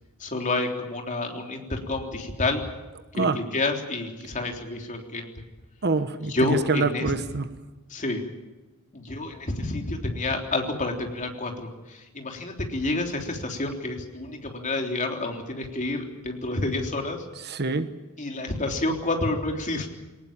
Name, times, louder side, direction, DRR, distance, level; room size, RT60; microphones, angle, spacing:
voice 1, 0.2-2.6 3.2-5.3 6.3-7.1 7.9-8.2 8.9-17.2 18.2-19.9, left 2 dB, 35° left, 3 dB, 3.6 m, -29 dB
voice 2, 5.8-7.5 17.4-17.9, right 4 dB, 50° right, 11 dB, 1.2 m, -25 dB
23.0 x 19.0 x 8.9 m, 1.1 s
head